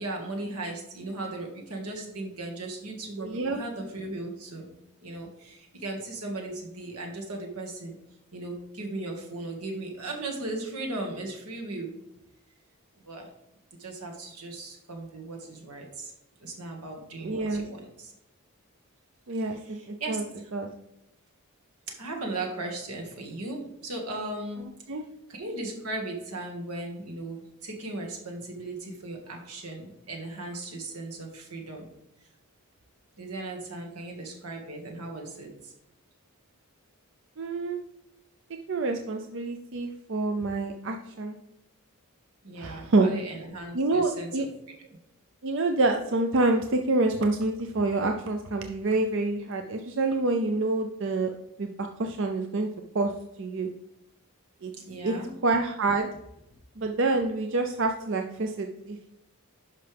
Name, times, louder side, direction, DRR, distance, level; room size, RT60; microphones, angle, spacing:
voice 1, 0.0-4.7 5.0-7.9 8.3-11.9 13.1-13.3 13.8-16.1 16.4-18.1 19.5-20.2 21.9-24.6 25.3-31.9 33.2-35.7 42.4-44.5 54.7-55.3, right 2 dB, 85° right, 1 dB, 1.9 m, -37 dB
voice 2, 3.2-3.6 17.2-17.6 19.3-20.2 20.5-20.7 24.9-25.0 37.4-37.8 38.7-41.4 42.6-43.1 43.7-44.5 45.4-51.3 51.6-52.7 52.9-53.1 53.4-53.7 54.6-54.7 55.0-55.1 55.4-56.1 56.8-59.1, right 2 dB, 55° right, 4 dB, 0.5 m, -27 dB
10.5 x 5.6 x 3.4 m, 0.85 s
head